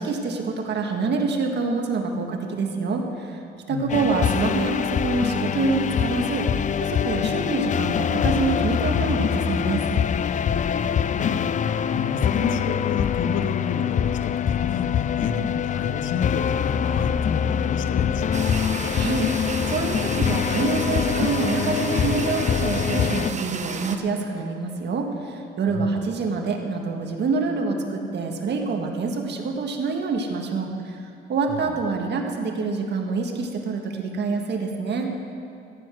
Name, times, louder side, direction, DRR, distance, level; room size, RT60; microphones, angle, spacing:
voice 1, 0.0-3.4 3.7-6.5 6.8-9.9 18.9-31.0 31.3-35.1, right 4 dB, 60° right, 3 dB, 1.7 m, -26 dB
voice 2, 3.7-4.2 7.3-7.4 10.7-18.5 25.7-26.1 31.5-31.7, left 5 dB, 75° left, 9 dB, 0.9 m, -31 dB
sound 1, 3.9-23.3, left 8 dB, 40° left, 0.4 m, -24 dB
sound 2, 18.3-24.0, right 4 dB, 35° right, 1.0 m, -32 dB
14.5 x 9.7 x 6.3 m, 2.5 s
cardioid pair, 90°, 20 cm